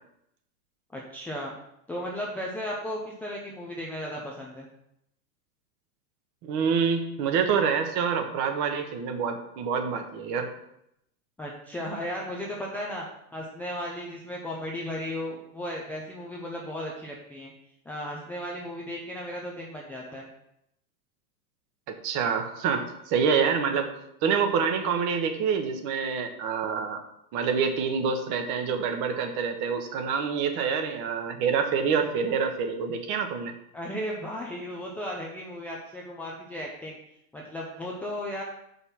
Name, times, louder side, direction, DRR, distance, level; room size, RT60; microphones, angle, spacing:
voice 1, 0.9-1.5 1.9-4.7 11.4-13.1 13.3-17.5 17.9-20.3 33.7-37.0 37.3-38.4, equal, 5° left, -3 dB, 0.4 m, -35 dB
voice 2, 6.4-10.5 21.9-23.9 24.2-27.0 27.3-33.5, right 6 dB, 40° right, 6 dB, 1.2 m, -27 dB
6.4 x 5.4 x 5.7 m, 0.79 s
supercardioid pair, 140°, 46 cm